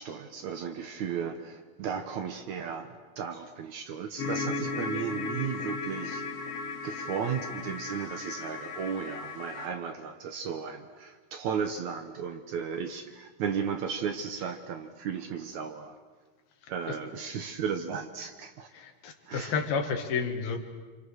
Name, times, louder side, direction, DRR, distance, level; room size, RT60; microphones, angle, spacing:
voice 1, 0.0-2.9 3.2-6.3 6.8-16.0 16.7-18.7 19.3-19.5, right 7 dB, 65° right, 7 dB, 2.0 m, -35 dB
sound 1, 4.2-9.7, left 4 dB, 55° left, 1.8 m, -36 dB
voice 2, 18.7-20.6, left 5 dB, 80° left, 5 dB, 3.8 m, -31 dB
27.0 x 27.0 x 6.5 m, 1.4 s
omnidirectional pair, 4.3 m